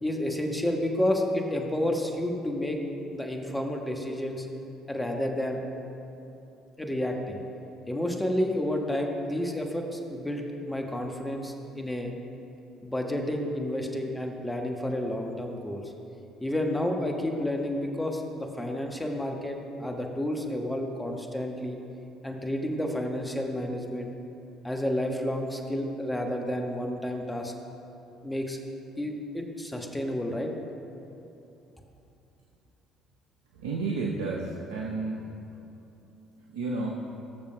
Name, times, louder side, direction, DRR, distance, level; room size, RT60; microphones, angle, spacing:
voice 1, 0.0-2.8 3.1-4.5 4.9-5.6 6.8-7.4 7.9-12.1 12.8-15.9 16.4-21.8 22.2-24.1 24.6-27.5 28.2-28.6 29.0-30.5, left 1 dB, 10° left, 2 dB, 1.2 m, -30 dB
voice 2, 33.5-35.2 36.5-37.0, right 3 dB, 80° right, -2 dB, 0.7 m, -31 dB
18.5 x 6.8 x 2.2 m, 2.8 s
hypercardioid pair, 55°, 0 cm